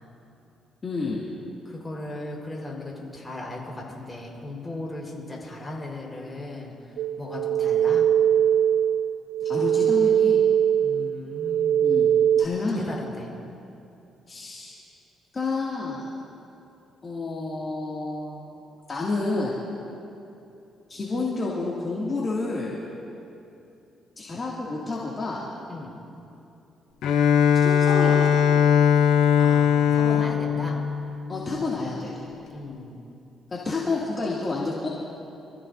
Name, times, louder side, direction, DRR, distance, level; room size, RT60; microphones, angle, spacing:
voice 1, 0.8-1.2 9.4-10.4 11.8-12.1 12.4-12.8 14.3-14.7 15.3-16.0 17.0-18.5 18.9-19.5 20.9-22.8 24.2-25.4 27.5-28.6 31.3-32.1 33.5-34.9, left 3 dB, 35° left, -6 dB, 2.4 m, -29 dB
voice 2, 1.6-6.7 7.2-8.1 10.8-11.9 12.8-13.3 25.7-25.9 29.4-30.8 32.5-33.0, left 2 dB, 20° left, -2 dB, 4.5 m, -37 dB
sound 1, 7.0-12.5, right 9 dB, 80° right, 0.3 m, -21 dB
Bowed string instrument, 27.0-31.8, left 8 dB, 75° left, 0.8 m, -20 dB
27.0 x 15.0 x 2.7 m, 2.8 s
cardioid pair, 90°, 0 cm